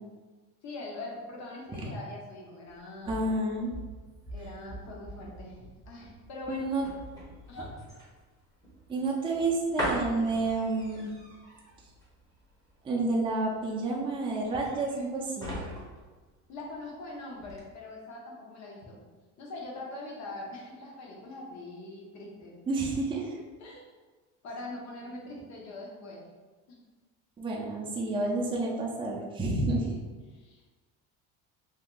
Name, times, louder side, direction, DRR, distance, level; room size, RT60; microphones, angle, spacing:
voice 1, 0.6-3.2 4.3-6.7 7.5-7.7 16.5-19.0 19.4-22.5 23.6-23.8 24.4-26.2 26.7-26.8 29.7-30.8, left 2 dB, 50° left, -2 dB, 1.0 m, -42 dB
sound 1, 2.7-17.0 17.4-17.6, equal, 10° left, 0.8 m, -41 dB
voice 2, 3.0-3.7 6.5-6.8 8.9-11.1 12.8-15.5 22.7-23.4 27.4-29.8, right 2 dB, 15° right, -3 dB, 0.5 m, -29 dB
2.7 x 2.3 x 3.7 m, 1.3 s
cardioid pair, 125°, 36 cm